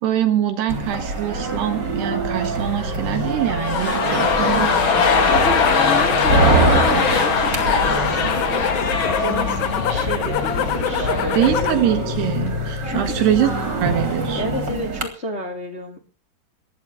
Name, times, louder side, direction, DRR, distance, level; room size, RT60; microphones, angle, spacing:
voice 1, 0.0-4.8 11.3-13.5 13.8-14.4, right 10 dB, 65° right, 7 dB, 3.5 m, -23 dB
sound 1, 0.7-15.0, right 2 dB, 25° right, 3.5 m, -24 dB
sound 2, 3.4-11.5 11.8-11.9, left 5 dB, 50° left, 1.6 m, -21 dB
sound 3, 5.1-11.9 12.2-12.8, left 11 dB, 75° left, 2.1 m, -28 dB
voice 2, 5.3-11.5 12.8-13.1 14.3-16.0, left 1 dB, 20° left, 2 dB, 2.0 m, -31 dB
16.0 x 11.0 x 7.1 m, 0.39 s
omnidirectional pair, 5.3 m